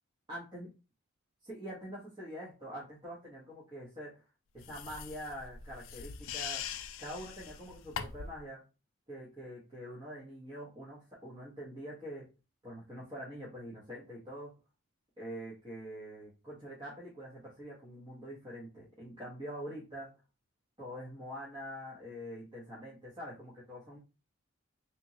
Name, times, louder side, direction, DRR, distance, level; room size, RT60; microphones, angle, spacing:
voice 1, 0.3-0.7 1.4-4.2 4.5-6.7 7.0-8.6 9.1-12.3 12.6-14.5 15.2-20.1 20.8-24.0, equal, 20° right, -7 dB, 1.0 m, -45 dB
sound 1, 4.6-8.4, left 8 dB, 70° left, 0.4 m, -42 dB
3.5 x 3.0 x 2.7 m, 0.30 s
head